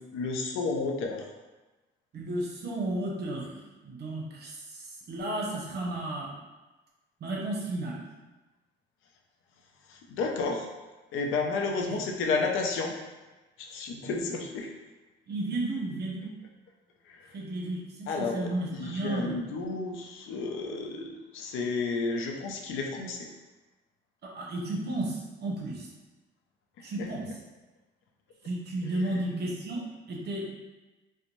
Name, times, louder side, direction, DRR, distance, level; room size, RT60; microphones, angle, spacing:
voice 1, 0.1-1.2 9.9-10.7 11.1-12.9 13.6-14.7 17.1-17.2 18.1-23.3 27.0-27.1, left 4 dB, 85° left, 2 dB, 0.4 m, -31 dB
voice 2, 2.1-6.3 7.2-8.0 11.7-12.0 14.0-14.2 15.3-16.3 17.3-19.4 24.2-25.9 26.8-27.3 28.4-30.5, right 1 dB, 55° right, -3 dB, 0.7 m, -33 dB
2.5 x 2.0 x 3.0 m, 1.2 s
cardioid pair, 90°, 20 cm